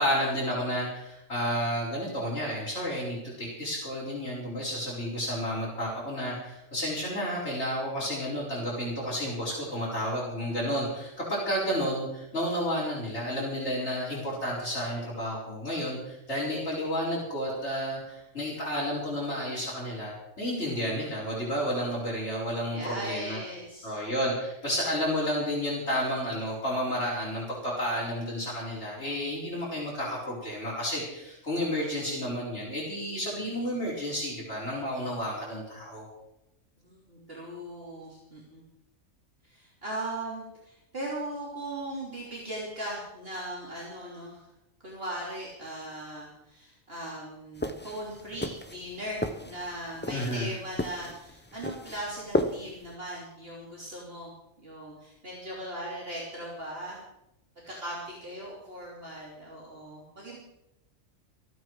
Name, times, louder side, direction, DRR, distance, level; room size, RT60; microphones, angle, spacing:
voice 1, 0.0-23.4 23.8-36.1 50.1-50.5, equal, 55° left, -8 dB, 5.1 m, -31 dB
voice 2, 22.7-23.9 36.8-38.6 39.4-44.4 44.8-54.3 54.6-57.0 57.7-60.4, right 1 dB, 45° right, -5 dB, 3.5 m, -39 dB
sound 1, 47.6-52.9, left 1 dB, 10° left, 0.6 m, -34 dB
27.0 x 9.1 x 4.8 m, 0.89 s
omnidirectional pair, 1.4 m